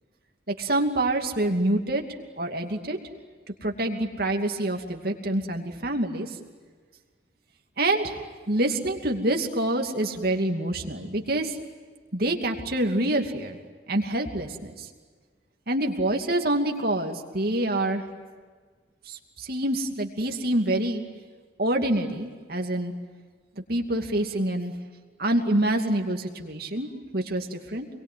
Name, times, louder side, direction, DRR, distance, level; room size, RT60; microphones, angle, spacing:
voice 1, 0.5-2.0 2.4-3.0 3.6-6.3 7.8-8.2 8.5-11.6 12.1-13.6 13.9-14.9 15.7-18.0 19.1-21.0 21.6-22.9 23.7-24.7 25.2-27.9, right 1 dB, 55° right, 2 dB, 2.7 m, -26 dB
27.5 x 22.5 x 9.4 m, 1.5 s
head